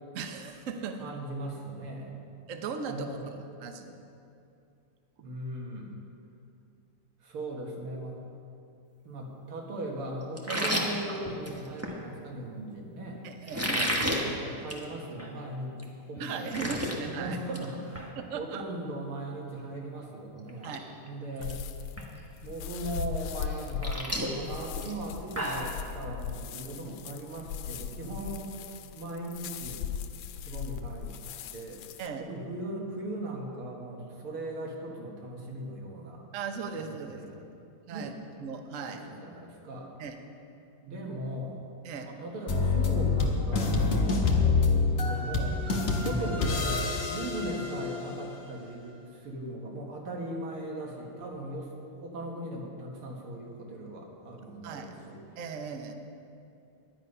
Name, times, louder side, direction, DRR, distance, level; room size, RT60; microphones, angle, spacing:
voice 1, 0.1-1.1 2.5-3.2 3.6-4.0 10.5-10.7 13.2-14.0 16.2-17.4 18.2-18.6 20.6-20.8 32.0-32.2 36.3-37.2 37.9-38.1 38.4-39.1 40.0-40.2 41.8-42.1 54.6-55.1 55.4-55.9, right 5 dB, 60° right, 5 dB, 0.8 m, -37 dB
voice 2, 1.0-2.1 2.9-3.3 5.2-6.0 7.2-8.1 9.0-13.3 14.3-15.8 16.1-20.8 21.0-21.6 22.4-28.5 29.0-29.9 30.4-31.2 31.5-31.8 32.2-36.3 36.8-37.3 37.9-38.2 38.9-39.9 40.8-41.7 42.0-43.7 44.6-45.6 46.0-51.7 52.0-55.2, right 1 dB, 85° right, -1 dB, 2.4 m, -38 dB
sound 1, 10.4-12.0 13.5-14.2 14.6-14.8 15.2-15.3 15.8-15.9 16.2-17.0 17.3-17.6 17.9-18.1 19.9-20.0 20.5-20.8 21.1-21.5 22.0-22.1 23.4-25.7, equal, 15° right, 0.5 m, -32 dB
sound 2, 21.4-32.1, left 8 dB, 85° left, 1.5 m, -38 dB
sound 3, 42.5-48.3, left 4 dB, 40° left, 0.9 m, -27 dB
10.5 x 10.5 x 5.4 m, 2.6 s
omnidirectional pair, 2.3 m